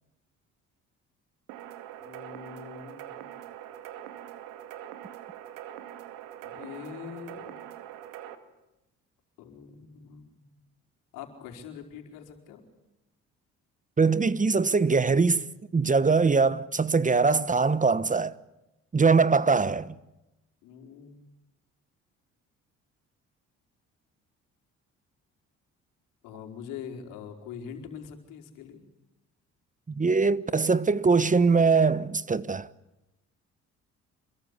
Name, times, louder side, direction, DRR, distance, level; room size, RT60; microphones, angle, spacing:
sound 1, 1.5-8.4, right 11 dB, 85° right, 2.2 m, -43 dB
voice 1, 2.0-3.1 6.4-7.5 9.4-10.4 11.1-12.7 20.6-21.2 26.2-28.8, left 7 dB, 80° left, 4.7 m, -43 dB
voice 2, 14.0-15.4 15.7-18.4 18.9-19.9 29.9-32.7, right 4 dB, 25° right, 1.2 m, -22 dB
28.0 x 22.5 x 8.4 m
supercardioid pair, 65°, 32 cm